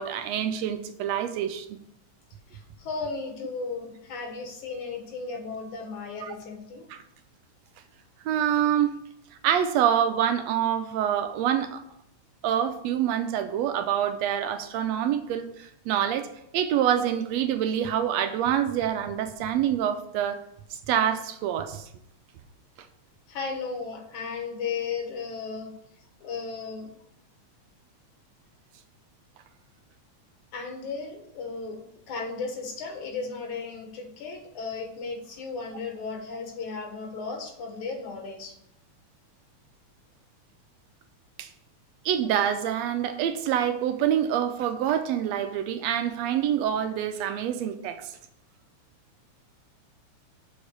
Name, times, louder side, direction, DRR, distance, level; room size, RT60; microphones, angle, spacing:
voice 1, 0.0-1.7 6.9-7.0 8.2-8.9 9.4-11.8 12.4-16.3 16.5-20.4 20.7-21.9 41.4-41.5 42.0-48.1, right 10 dB, 75° right, 8 dB, 1.7 m, -26 dB
voice 2, 2.5-6.9 23.3-25.7 26.2-26.9 30.5-31.8 32.1-38.6, left 4 dB, 80° left, 2 dB, 2.9 m, -35 dB
7.0 x 5.3 x 6.5 m, 0.76 s
omnidirectional pair, 3.4 m